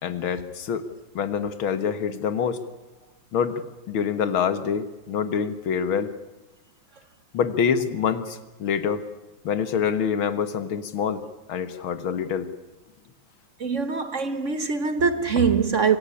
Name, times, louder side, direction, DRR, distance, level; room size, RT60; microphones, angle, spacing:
voice 1, 0.0-0.8 1.2-2.6 3.3-3.6 3.9-6.1 7.3-9.0 9.4-11.2 11.5-12.5, left 7 dB, 80° left, 2.2 m, -26 dB
voice 2, 13.6-16.0, right 5 dB, 45° right, 1.2 m, -23 dB
25.0 x 17.5 x 9.8 m
omnidirectional pair, 2.2 m